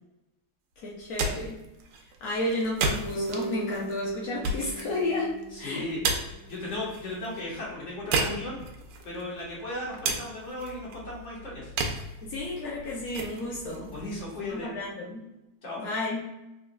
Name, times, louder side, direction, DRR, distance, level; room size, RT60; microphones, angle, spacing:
voice 1, 0.8-1.6 2.2-5.9 12.2-13.9 14.4-15.3 15.8-16.3, left 2 dB, 75° left, -4 dB, 0.8 m, -32 dB
sound 1, 0.9-14.9, right 3 dB, 85° right, 1.5 m, -35 dB
Bass guitar, 3.1-7.3, right 1 dB, 15° left, 0.7 m, -39 dB
voice 2, 5.6-6.0 6.5-8.6 9.0-11.7 13.9-14.7 15.6-15.8, left 1 dB, 40° left, -5 dB, 1.3 m, -36 dB
3.8 x 3.5 x 2.2 m, 0.93 s
omnidirectional pair, 2.4 m